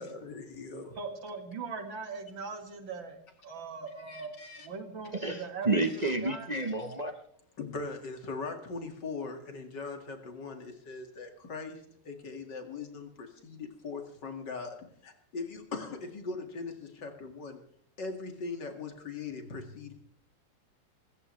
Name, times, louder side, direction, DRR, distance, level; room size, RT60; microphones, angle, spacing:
voice 1, 0.0-1.0 4.0-4.7 7.6-11.8 12.0-14.8 15.0-17.6 18.0-19.9, left 4 dB, 65° left, 5 dB, 2.7 m, -40 dB
voice 2, 1.0-3.2 3.4-4.3 4.6-5.7 6.2-6.5, right 4 dB, 85° right, 5 dB, 2.8 m, -40 dB
voice 3, 5.1-7.1, right 2 dB, 30° right, 6 dB, 0.9 m, -30 dB
25.0 x 14.0 x 3.2 m, 0.64 s
omnidirectional pair, 2.0 m